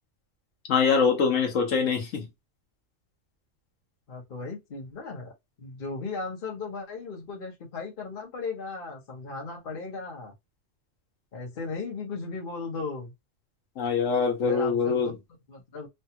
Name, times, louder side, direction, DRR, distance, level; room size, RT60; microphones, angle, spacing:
voice 1, 0.7-2.3 13.8-15.1, left 5 dB, 80° left, 1.3 m, -24 dB
voice 2, 4.1-10.3 11.3-13.1 14.4-15.1 15.5-15.9, left 4 dB, 45° left, 1.1 m, -36 dB
3.3 x 2.3 x 2.8 m
omnidirectional pair, 1.3 m